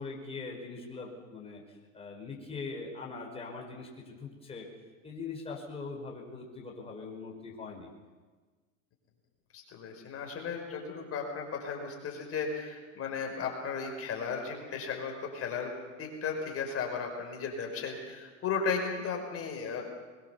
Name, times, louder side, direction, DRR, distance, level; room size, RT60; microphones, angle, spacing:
voice 1, 0.0-4.7 5.0-7.9, left 4 dB, 15° left, -2 dB, 5.1 m, -42 dB
voice 2, 9.5-19.8, left 5 dB, 35° left, 3 dB, 5.4 m, -35 dB
22.5 x 20.5 x 7.1 m, 1.4 s
hypercardioid pair, 100°, 38 cm